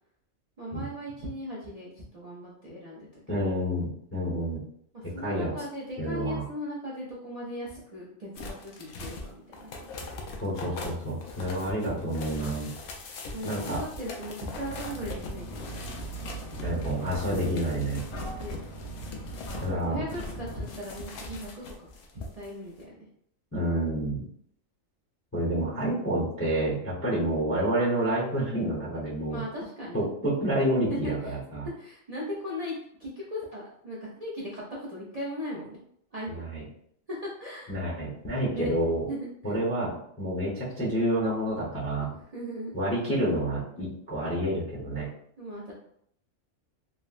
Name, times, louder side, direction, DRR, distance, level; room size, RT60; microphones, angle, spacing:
voice 1, 0.6-3.2 4.9-10.0 13.3-15.8 18.3-18.6 19.7-21.9 22.1-23.1 29.3-30.0 30.9-31.4 31.8-32.7 33.0-35.8 36.1-36.4 37.1-37.7 38.5-38.7 39.1-39.6 42.3-43.1 45.4-45.7, equal, 50° right, -6 dB, 0.4 m, -38 dB
voice 2, 3.3-4.6 5.0-5.5 6.0-6.4 10.4-12.7 13.4-13.8 16.6-18.0 19.6-20.0 23.5-24.2 25.3-29.4 29.9-31.7 36.4-36.6 37.7-39.0 39.4-39.9 40.2-42.1 42.7-45.1, right 1 dB, 10° left, -6 dB, 0.7 m, -28 dB
sound 1, 8.3-19.7 20.1-22.5 22.8-22.9, left 3 dB, 70° left, 0.9 m, -41 dB
sound 2, 14.6-20.6, right 2 dB, 90° left, 1.3 m, -39 dB
3.5 x 2.1 x 2.4 m, 0.67 s
omnidirectional pair, 1.4 m